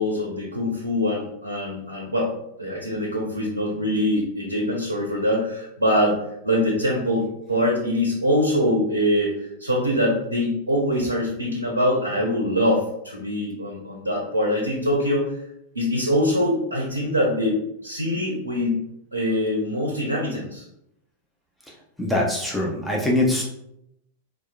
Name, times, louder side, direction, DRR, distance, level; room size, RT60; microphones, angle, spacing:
voice 1, 0.0-2.3 2.6-6.2 6.4-15.4 15.7-18.8 19.1-20.6, left 1 dB, 90° right, -1 dB, 0.6 m, -23 dB
voice 2, 22.0-23.4, left 1 dB, ahead, -3 dB, 0.7 m, -22 dB
4.4 x 2.2 x 2.3 m, 0.79 s
figure-of-eight pair, 95°, 0 cm